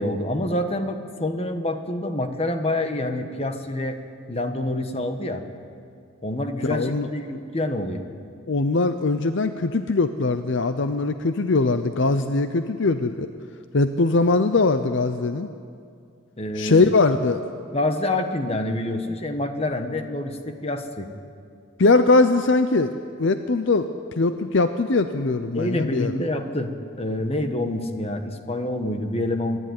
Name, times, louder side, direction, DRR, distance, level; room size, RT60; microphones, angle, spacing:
voice 1, 0.0-4.0 4.3-5.4 6.2-8.0 16.4-16.8 17.7-21.1 25.5-26.7 27.0-29.6, left 1 dB, 30° left, 6 dB, 1.3 m, -27 dB
voice 2, 6.6-7.1 8.5-13.3 13.7-15.5 16.6-17.4 21.8-22.9 23.2-23.9 24.2-26.1, left 3 dB, 60° left, 9 dB, 0.6 m, -21 dB
25.0 x 11.0 x 9.5 m, 2.3 s
head